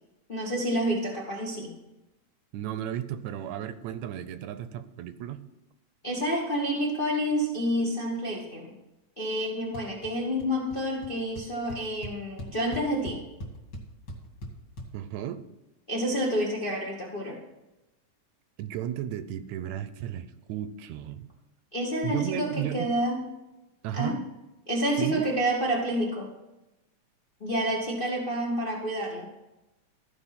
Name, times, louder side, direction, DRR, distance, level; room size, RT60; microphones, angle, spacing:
voice 1, 0.3-1.7 6.0-8.7 9.2-13.3 15.9-17.4 21.7-23.2 23.9-24.2 24.7-26.3 27.4-29.3, equal, 80° left, -2 dB, 0.4 m, -29 dB
voice 2, 2.5-5.4 14.9-15.4 18.6-21.3 22.0-22.9 23.8-24.2 25.0-25.3, right 11 dB, 80° right, 12 dB, 1.9 m, -34 dB
sound 1, 9.7-10.1 10.4-10.8 11.0-11.1 11.4-14.9, equal, 40° left, 2.2 m, -40 dB
14.0 x 5.3 x 5.8 m, 0.99 s
omnidirectional pair, 3.4 m